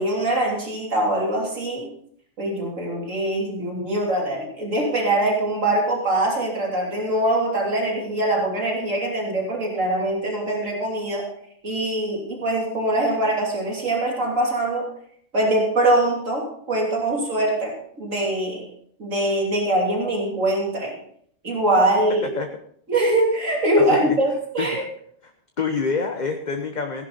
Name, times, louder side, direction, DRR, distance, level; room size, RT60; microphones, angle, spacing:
voice 1, 0.0-1.9 2.4-11.3 11.6-14.9 15.3-18.7 19.0-21.0 21.4-22.3 22.9-24.8, right 1 dB, 85° right, -1 dB, 3.5 m, -23 dB
voice 2, 23.8-24.2 24.6-24.9 25.6-27.1, left 4 dB, 40° left, 4 dB, 1.1 m, -26 dB
16.5 x 11.0 x 4.1 m, 0.64 s
omnidirectional pair, 1.3 m